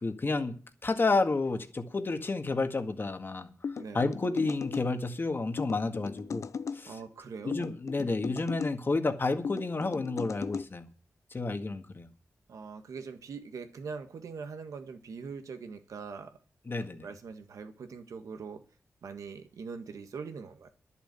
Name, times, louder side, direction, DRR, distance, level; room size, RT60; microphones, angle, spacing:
voice 1, 0.0-3.5 3.9-6.5 6.7-7.0 7.4-10.9 11.3-12.1 16.7-17.1, left 3 dB, 40° left, 1.8 m, -30 dB
sound 1, 3.6-4.9 5.6-6.8 7.5-8.7 9.4-10.7, left 6 dB, 70° left, 0.5 m, -37 dB
voice 2, 6.9-7.7 12.5-16.4 17.0-18.6 19.0-20.7, right 5 dB, 90° right, 1.6 m, -42 dB
11.0 x 7.2 x 8.9 m
cardioid pair, 75°, 5 cm